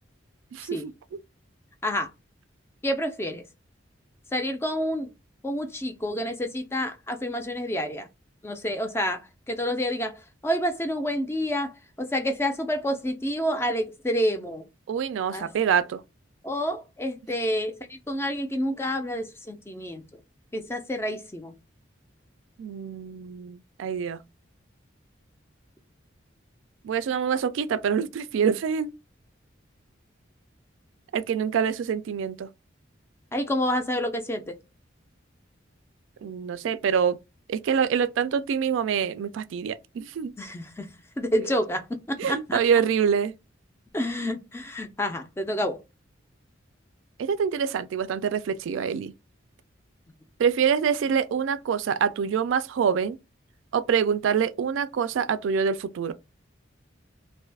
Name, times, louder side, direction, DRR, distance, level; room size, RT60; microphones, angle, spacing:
voice 1, 0.5-1.2 14.9-16.0 22.6-24.2 26.8-28.9 31.1-32.5 36.2-37.2 37.5-40.3 42.2-43.3 47.2-49.1 50.4-53.2 53.7-56.1, right 7 dB, 75° right, 0.3 m, -25 dB
voice 2, 2.8-3.4 4.3-5.1 5.4-8.1 8.4-14.7 15.3-15.5 16.4-20.0 20.5-21.5 33.3-34.6 40.4-40.9 41.2-42.6 43.9-45.8, equal, 10° left, 0.3 m, -29 dB
2.6 x 2.3 x 3.3 m
head